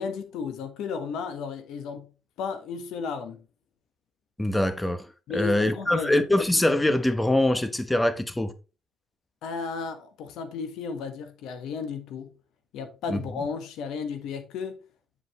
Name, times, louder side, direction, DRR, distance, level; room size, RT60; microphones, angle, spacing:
voice 1, 0.0-2.1 2.4-3.4 5.3-6.1 9.4-12.3 12.7-14.9, left 5 dB, 90° left, 1.5 m, -34 dB
voice 2, 4.4-5.0 5.3-8.5 13.1-13.2, left 1 dB, 10° left, 1.0 m, -23 dB
9.9 x 5.2 x 3.2 m
cardioid pair, 90°, 0 cm